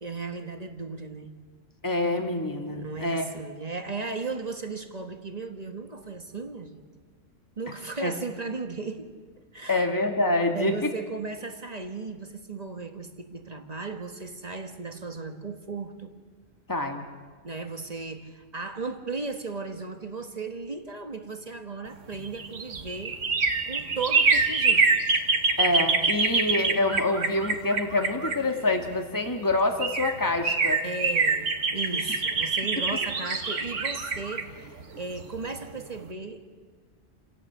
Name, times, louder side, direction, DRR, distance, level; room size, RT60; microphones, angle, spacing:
voice 1, 0.0-1.4 2.7-6.8 7.6-9.1 9.5-9.9 10.5-16.1 17.4-23.2 23.7-25.0 30.8-36.4, right 4 dB, 35° right, 6 dB, 1.8 m, -36 dB
voice 2, 1.8-3.2 8.0-8.1 9.7-10.9 16.7-17.0 25.6-30.8, left 2 dB, 15° left, 4 dB, 2.0 m, -26 dB
sound 1, 22.1-28.9 29.5-29.6 29.8-35.6 35.9-36.0, right 4 dB, 80° right, 1.9 m, -25 dB
28.5 x 17.5 x 8.7 m, 1.5 s
omnidirectional pair, 1.3 m